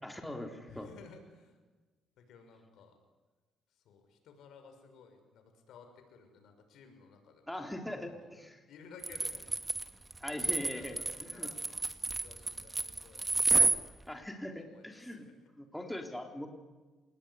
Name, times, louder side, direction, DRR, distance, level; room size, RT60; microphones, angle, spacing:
voice 1, 0.0-0.9 7.5-8.6 10.2-11.5 14.1-15.3 15.6-16.5, left 1 dB, 5° left, 3 dB, 3.9 m, -41 dB
voice 2, 0.7-1.6 2.2-2.9 3.8-7.4 7.9-8.2 8.7-9.4 10.7-11.6 12.2-13.7 14.5-15.3, left 5 dB, 80° left, 6 dB, 6.1 m, -56 dB
sound 1, 9.0-13.8, right 2 dB, 20° right, 2.1 m, -30 dB
27.5 x 20.0 x 9.9 m, 1.3 s
cardioid pair, 90°, 0 cm